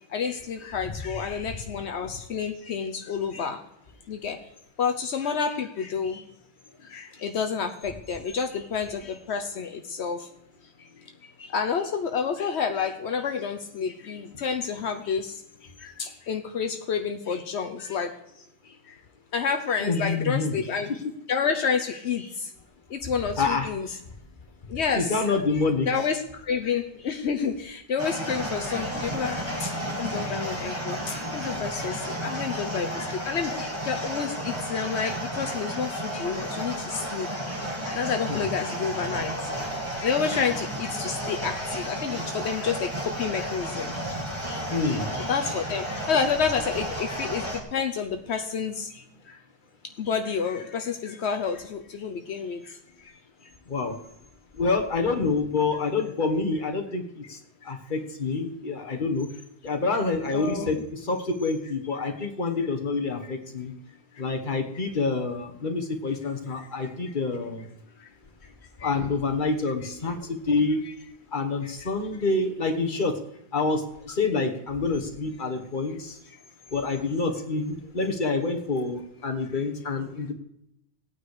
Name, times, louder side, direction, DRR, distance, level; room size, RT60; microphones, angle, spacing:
voice 1, 0.1-3.6 4.1-4.4 4.8-6.2 6.9-10.3 11.4-15.4 15.8-18.1 18.9-19.0 19.3-20.9 21.3-22.5 22.9-23.9 24.7-29.7 30.0-37.3 37.8-39.3 40.0-43.9 44.4-49.4 50.0-52.8 53.0-53.1 60.3-60.8 63.2-63.3 68.8-68.9 71.6-71.9 79.5-79.6, left 6 dB, 80° left, 5 dB, 1.1 m, -29 dB
voice 2, 19.8-20.5 21.0-21.1 23.4-23.7 24.9-25.9 31.2-31.3 38.3-38.4 44.7-45.1 53.7-54.0 54.6-57.4 57.6-59.3 59.6-63.7 64.2-67.6 68.8-70.8 71.3-73.1 73.5-76.1 76.7-80.3, left 3 dB, 50° left, 5 dB, 1.6 m, -27 dB
sound 1, 28.0-47.6, equal, 25° right, 2.5 m, -32 dB
17.0 x 9.2 x 4.9 m, 0.80 s
omnidirectional pair, 1.1 m